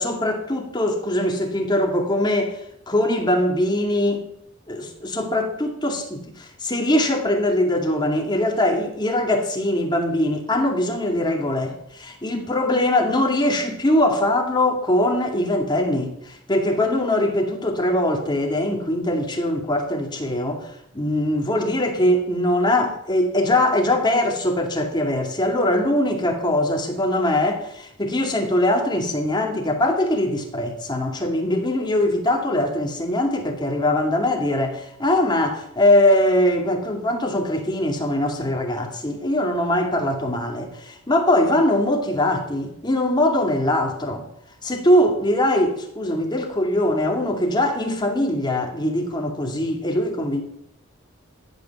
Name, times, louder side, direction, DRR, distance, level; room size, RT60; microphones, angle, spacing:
voice 1, 0.0-2.6 2.9-4.3 4.7-44.2 44.6-50.4, left 1 dB, 20° left, 2.3 m, -22 dB
14.0 x 8.3 x 7.0 m
head